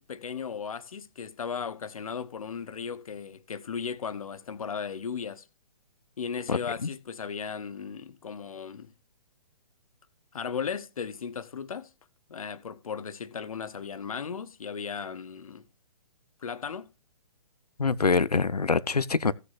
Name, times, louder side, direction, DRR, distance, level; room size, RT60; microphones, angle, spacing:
voice 1, 0.0-5.5 6.2-8.9 10.3-11.9 12.3-15.6 16.4-16.9, left 6 dB, 65° left, 1.1 m, -36 dB
voice 2, 6.5-6.9 17.8-19.3, left 4 dB, 85° left, 0.8 m, -25 dB
16.5 x 6.7 x 2.6 m
figure-of-eight pair, 130°, 19 cm